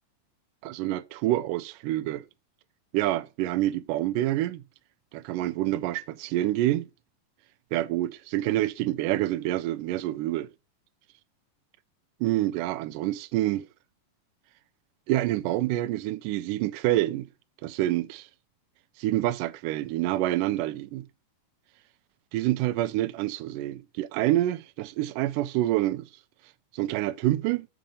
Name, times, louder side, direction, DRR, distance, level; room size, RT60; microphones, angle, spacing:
voice 1, 0.6-2.2 2.9-4.6 5.1-6.9 7.7-10.5 12.2-13.7 15.1-17.3 17.6-18.3 19.0-21.1 22.3-26.1 26.7-27.7, right 15 dB, 80° right, 2.0 m, -27 dB
7.2 x 5.3 x 5.1 m
omnidirectional pair, 4.2 m